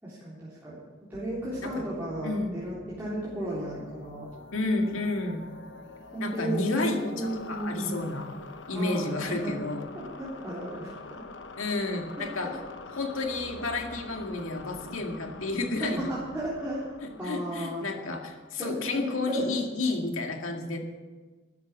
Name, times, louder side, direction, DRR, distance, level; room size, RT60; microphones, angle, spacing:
voice 1, 0.0-0.8 1.1-4.3 6.1-8.0 8.7-9.5 10.2-10.9 12.2-12.3 15.8-17.8 18.6-19.4, right 1 dB, 10° right, -10 dB, 3.7 m, -34 dB
sound 1, 1.1-19.6, left 3 dB, 65° left, 1.0 m, -46 dB
voice 2, 2.2-2.6 4.5-5.4 6.2-8.3 8.7-9.8 11.6-12.5 13.0-16.2 17.0-20.8, left 2 dB, 85° left, 3 dB, 2.1 m, -31 dB
13.5 x 10.5 x 7.4 m, 1.3 s
head